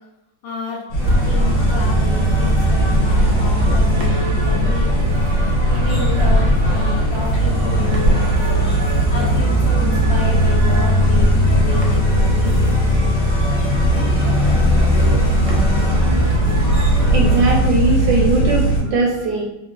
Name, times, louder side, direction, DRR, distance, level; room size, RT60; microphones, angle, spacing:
voice 1, 0.4-5.1 5.7-8.6 9.1-11.3 11.6-12.8, left 3 dB, 80° left, -2 dB, 1.5 m, -30 dB
sound 1, 0.9-18.8, right 1 dB, 45° left, 1.2 m, -18 dB
sound 2, 1.0-17.7, left 1 dB, 10° left, 0.6 m, -25 dB
sound 3, 1.0-17.5, right 1 dB, 90° right, 1.4 m, -30 dB
voice 2, 17.1-19.4, right 2 dB, 75° right, -2 dB, 1.0 m, -19 dB
3.7 x 2.0 x 2.5 m, 0.92 s
omnidirectional pair, 2.0 m